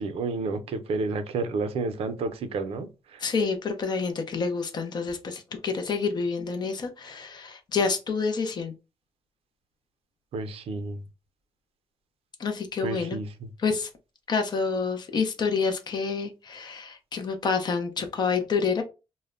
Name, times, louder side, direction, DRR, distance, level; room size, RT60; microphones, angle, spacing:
voice 1, 0.0-2.9 10.3-11.0 12.8-13.5, right 3 dB, 70° right, 0.5 m, -30 dB
voice 2, 3.2-8.7 12.4-13.2 13.6-13.9 14.3-18.8, left 5 dB, 45° left, 0.5 m, -28 dB
2.1 x 2.0 x 3.5 m
cardioid pair, 140°, 10 cm